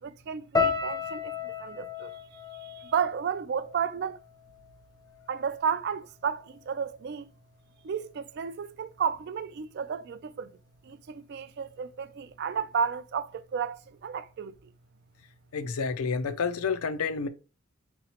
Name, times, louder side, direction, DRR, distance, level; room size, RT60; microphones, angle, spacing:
voice 1, 0.0-2.2 2.6-4.2 5.3-7.3 7.8-10.6 10.8-14.5, right 7 dB, 50° right, 0.3 m, -32 dB
sound 1, 0.5-4.8 5.0-5.8 6.4-6.6, left 5 dB, 15° left, 0.5 m, -34 dB
voice 2, 15.5-17.3, left 5 dB, 85° left, 0.5 m, -29 dB
3.9 x 3.0 x 2.8 m
head